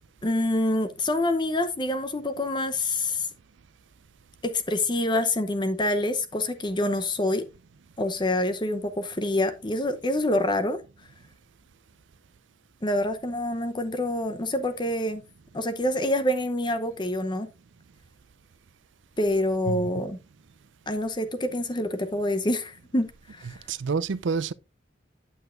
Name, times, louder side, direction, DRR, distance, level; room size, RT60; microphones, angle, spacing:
voice 1, 0.2-3.3 4.4-7.5 8.0-10.8 12.8-15.2 15.5-17.5 19.2-20.2 20.9-23.6, left 1 dB, 25° left, 0.7 m, -26 dB
voice 2, 23.5-24.5, right 5 dB, 70° right, 0.5 m, -28 dB
8.9 x 8.1 x 2.5 m
head